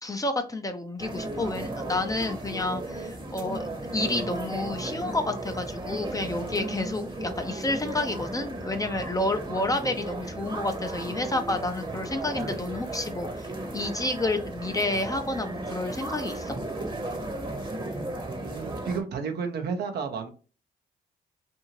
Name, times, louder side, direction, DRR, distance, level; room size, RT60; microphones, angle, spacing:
voice 1, 0.0-3.7 3.9-16.5, left 2 dB, 20° left, 6 dB, 0.5 m, -30 dB
sound 1, 1.0-19.0, right 2 dB, 30° right, 0.9 m, -35 dB
voice 2, 18.4-20.3, right 5 dB, 75° right, 5 dB, 0.7 m, -32 dB
2.7 x 2.6 x 2.9 m, 0.35 s
supercardioid pair, 55°, 17 cm